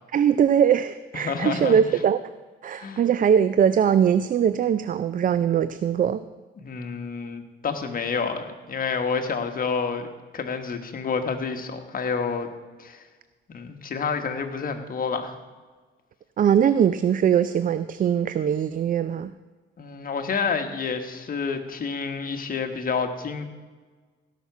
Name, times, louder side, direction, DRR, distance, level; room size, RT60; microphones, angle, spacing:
voice 1, 0.1-2.2 2.6-6.2 16.4-19.3, right 8 dB, 45° right, 13 dB, 0.4 m, -21 dB
voice 2, 1.1-1.8 2.8-3.1 6.6-10.1 10.3-12.5 12.8-13.0 13.5-15.3 19.8-23.4, left 5 dB, 45° left, 5 dB, 1.4 m, -29 dB
17.0 x 5.8 x 6.0 m, 1.4 s
cardioid pair, 90°, 20 cm